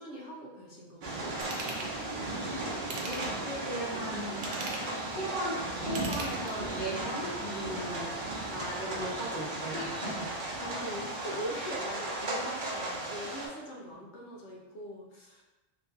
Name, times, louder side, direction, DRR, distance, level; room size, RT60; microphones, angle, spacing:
voice 1, 0.0-1.4 7.4-7.6 10.5-15.4, equal, 80° left, -2 dB, 1.0 m, -42 dB
sound 1, 1.0-13.5, right 2 dB, 50° right, 0.8 m, -36 dB
Ratchet pawl / Tools, 1.4-1.9 2.8-3.5 4.3-5.0 5.8-6.7 7.2-7.3, right 3 dB, 85° right, 1.0 m, -40 dB
voice 2, 3.0-4.4 5.1-8.1 8.4-10.3, right 1 dB, 20° left, -8 dB, 1.1 m, -37 dB
3.0 x 2.6 x 3.6 m, 1.1 s
omnidirectional pair, 1.2 m